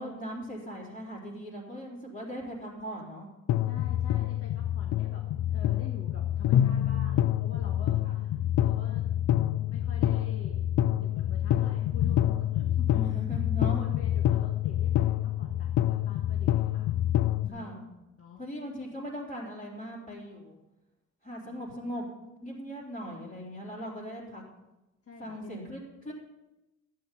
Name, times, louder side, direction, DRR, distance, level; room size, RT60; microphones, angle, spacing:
voice 1, 0.0-3.3 8.0-8.3 12.9-13.8 17.5-17.8 18.4-20.6 21.2-22.1 22.4-24.4 25.2-26.1, equal, 25° left, -5 dB, 3.8 m, -39 dB
sound 1, 3.5-17.5, left 12 dB, 65° left, 0.5 m, -27 dB
voice 2, 3.6-9.1 9.7-13.0 13.8-16.9 17.4-17.7 18.2-18.4 21.4-21.6 25.1-25.6, left 4 dB, 50° left, 0 dB, 1.8 m, -48 dB
11.0 x 8.8 x 5.6 m, 0.99 s
cardioid pair, 90°, 30 cm